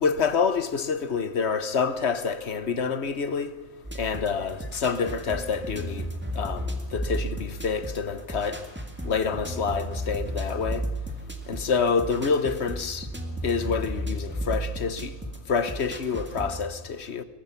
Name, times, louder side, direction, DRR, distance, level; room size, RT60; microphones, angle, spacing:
voice 1, 0.0-3.5 4.0-6.1 6.4-8.6 9.0-10.8 11.5-13.1 13.4-15.1 15.5-17.2, left 5 dB, 55° left, 1.3 m, -27 dB
sound 1, 3.8-16.7, equal, 10° right, 2.0 m, -34 dB
22.5 x 20.5 x 5.9 m
omnidirectional pair, 1.4 m